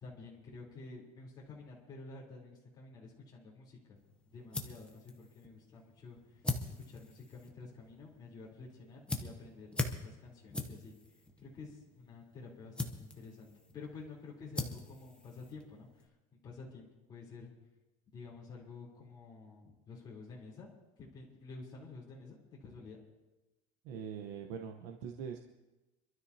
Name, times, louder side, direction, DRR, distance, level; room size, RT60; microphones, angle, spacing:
voice 1, 0.0-4.0 4.3-10.9 11.4-16.1 16.4-17.5 18.1-20.7 21.0-23.0, left 4 dB, 25° left, -4 dB, 3.7 m, -50 dB
sound 1, 3.9-16.1, left 2 dB, 5° left, 0.8 m, -43 dB
voice 2, 23.8-25.4, right 7 dB, 60° right, 4 dB, 1.1 m, -42 dB
26.0 x 12.5 x 2.8 m, 1.1 s
cardioid pair, 175°, 18 cm